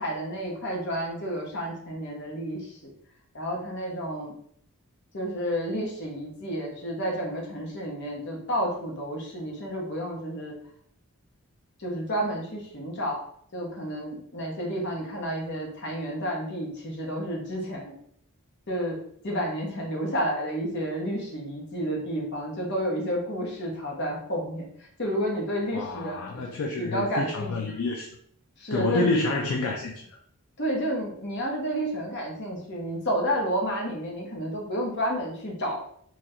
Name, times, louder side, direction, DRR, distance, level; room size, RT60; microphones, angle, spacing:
voice 1, 0.0-2.8 3.3-4.4 5.1-10.6 11.8-13.2 13.5-17.9 18.7-19.0 19.2-26.4 26.8-27.5 28.6-29.2 30.6-35.8, equal, 50° left, -2 dB, 1.0 m, -30 dB
voice 2, 25.7-28.2 28.7-30.1, left 3 dB, 70° left, 0 dB, 0.4 m, -28 dB
2.9 x 2.4 x 4.2 m, 0.64 s
head